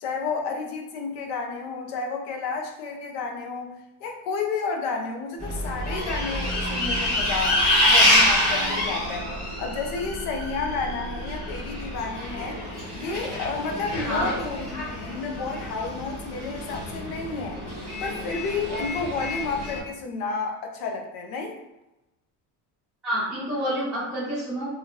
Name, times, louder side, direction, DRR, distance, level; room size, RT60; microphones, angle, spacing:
voice 1, 0.0-9.3 9.6-12.6 12.9-17.6 18.0-21.6, left 4 dB, 85° left, 2 dB, 0.7 m, -31 dB
Bus, 5.4-19.8, left 1 dB, 25° left, 1.4 m, -27 dB
voice 2, 23.0-24.8, equal, 5° right, -12 dB, 0.7 m, -28 dB
2.9 x 2.5 x 2.8 m, 0.93 s
cardioid pair, 160°, 40 cm